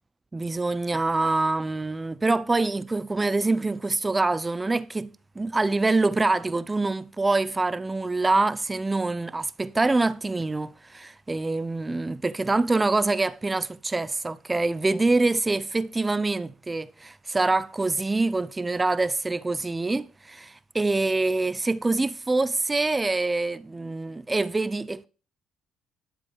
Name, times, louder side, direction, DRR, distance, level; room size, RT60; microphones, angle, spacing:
voice 1, 0.3-25.0, right 3 dB, 20° right, 0.7 m, -25 dB
11.5 x 7.4 x 4.9 m
supercardioid pair, 65°, 0 cm